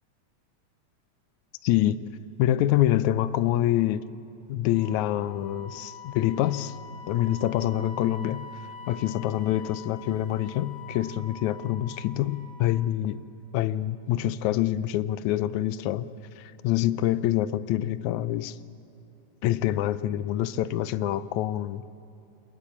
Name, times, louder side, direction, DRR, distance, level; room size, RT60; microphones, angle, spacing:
voice 1, 1.6-2.0 2.4-4.0 4.5-6.8 7.1-8.5 8.9-13.2 13.5-16.1 16.4-18.6 19.4-21.8, left 13 dB, 75° left, 14 dB, 2.0 m, -26 dB
Wind instrument woodwind instrument, 4.7-13.0, left 4 dB, 60° left, 3.0 m, -45 dB
29.0 x 20.0 x 8.6 m, 3.0 s
omnidirectional pair, 3.6 m